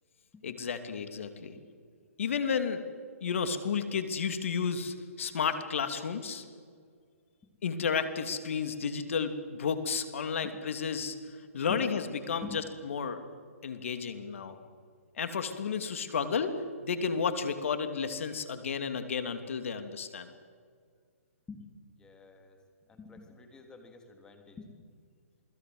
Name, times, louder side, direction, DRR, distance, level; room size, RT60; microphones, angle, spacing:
voice 1, 0.4-1.6 2.2-2.8 3.2-6.4 7.6-11.1 11.5-12.4 12.9-13.2 13.6-14.6 15.1-16.5 16.8-20.3, left 6 dB, 60° left, 9 dB, 2.9 m, -32 dB
voice 2, 22.0-22.6 22.9-24.9, left 4 dB, 10° left, 4 dB, 3.5 m, -47 dB
28.0 x 21.0 x 8.0 m, 2.1 s
hypercardioid pair, 140°, 8 cm